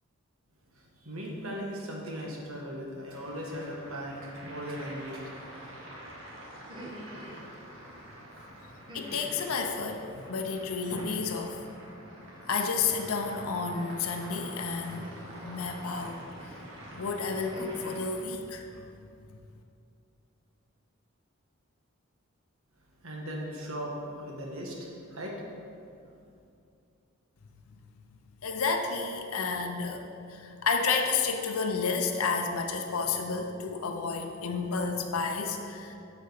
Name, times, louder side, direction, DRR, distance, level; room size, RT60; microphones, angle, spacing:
voice 1, 0.7-5.7 23.0-25.4, equal, 80° right, -1 dB, 1.4 m, -38 dB
sound 1, 3.1-18.2, right 1 dB, 60° right, 1.6 m, -47 dB
sound 2, 6.5-7.5 8.9-9.6 10.9-11.5 12.9-13.4 14.9-15.5 16.4-16.8 17.2-18.1, equal, 20° right, 1.0 m, -46 dB
voice 2, 8.9-11.6 12.5-15.1 15.4-16.5 17.0-18.9 28.4-36.0, left 4 dB, 85° left, 4 dB, 0.6 m, -31 dB
6.6 x 5.1 x 6.8 m, 2.5 s
head